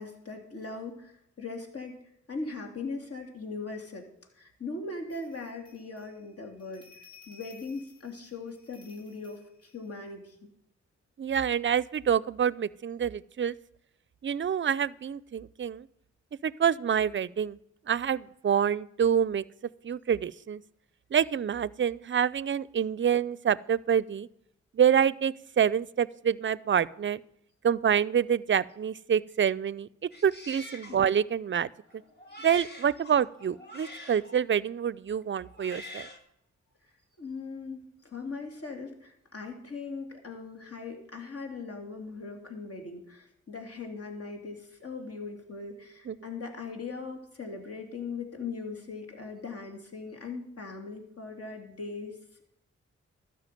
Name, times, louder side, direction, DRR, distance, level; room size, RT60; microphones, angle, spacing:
voice 1, 0.0-2.0 2.3-4.0 4.4-10.5 30.9-31.0 37.2-52.4, left 4 dB, 55° left, 3 dB, 3.0 m, -40 dB
sound 1, 5.1-10.3, left 5 dB, 15° left, 2.8 m, -57 dB
voice 2, 11.2-13.6 14.2-15.9 16.4-17.6 17.9-19.4 19.8-20.6 21.1-24.3 24.7-27.2 27.6-29.9 30.2-31.7 32.4-36.1 46.1-46.2, right 8 dB, 40° right, 21 dB, 0.5 m, -27 dB
Male speech man speaking, 30.1-31.0 31.9-34.4 35.3-36.2, left 1 dB, 35° left, 2.3 m, -46 dB
12.5 x 5.7 x 9.1 m, 0.76 s
cardioid pair, 55°, 29 cm